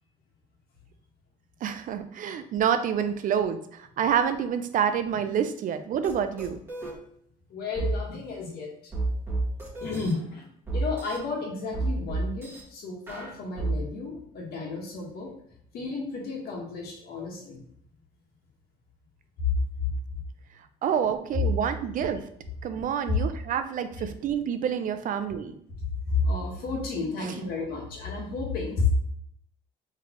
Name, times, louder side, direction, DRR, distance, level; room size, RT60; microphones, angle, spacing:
voice 1, 1.6-6.6 20.8-22.2 22.6-25.6 27.2-27.4, right 8 dB, 55° right, 9 dB, 0.4 m, -28 dB
sound 1, 6.0-6.1 6.4-6.9 7.8-7.9 8.9-10.1 10.7-11.2 11.7-12.6 13.1-13.7, right 3 dB, 15° right, 1.6 m, -30 dB
voice 2, 7.5-8.7 9.8-10.4 10.7-15.3 15.7-17.6 19.4-19.5 19.8-19.9 26.1-28.9, left 4 dB, 65° left, -1 dB, 1.3 m, -31 dB
3.9 x 3.2 x 2.9 m, 0.68 s
cardioid pair, 110°, 17 cm